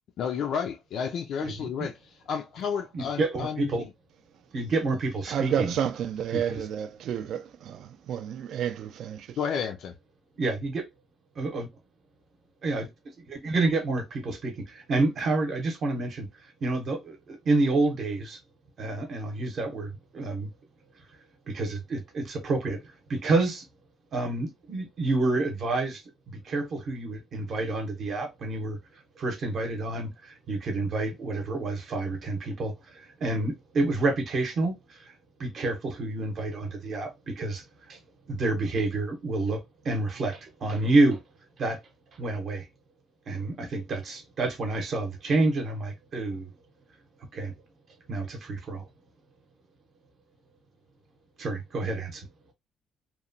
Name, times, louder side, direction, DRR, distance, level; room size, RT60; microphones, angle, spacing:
voice 1, 0.2-3.9 9.4-10.0, left 7 dB, 55° left, 0.3 m, -32 dB
voice 2, 2.9-3.9 4.5-5.7 6.3-6.6 10.4-10.9 11.4-11.7 12.6-12.9 13.2-18.4 18.8-20.5 21.5-23.7 24.1-28.8 29.2-35.1 35.4-38.0 38.3-41.2 41.6-41.8 42.1-42.7 43.3-46.5 47.3-47.5 48.1-48.8 51.4-52.3, right 2 dB, 40° right, 0.7 m, -29 dB
voice 3, 5.3-9.4, right 9 dB, 60° right, 0.3 m, -31 dB
2.9 x 2.1 x 2.5 m
cardioid pair, 170°, 0 cm